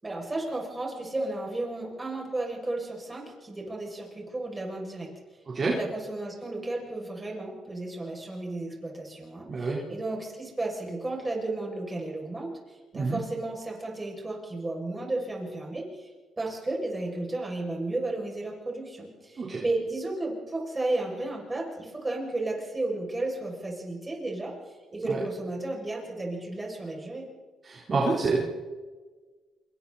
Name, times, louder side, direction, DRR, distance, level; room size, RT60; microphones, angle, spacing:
voice 1, 0.0-5.1 5.6-16.1 16.4-27.3, right 2 dB, 20° right, -1 dB, 7.0 m, -33 dB
voice 2, 5.5-5.8 9.5-9.8 12.9-13.2 19.4-19.6 25.0-25.2 27.6-28.4, right 3 dB, 40° right, -4 dB, 4.1 m, -27 dB
27.0 x 23.0 x 4.3 m, 1.4 s
cardioid pair, 90°, 0 cm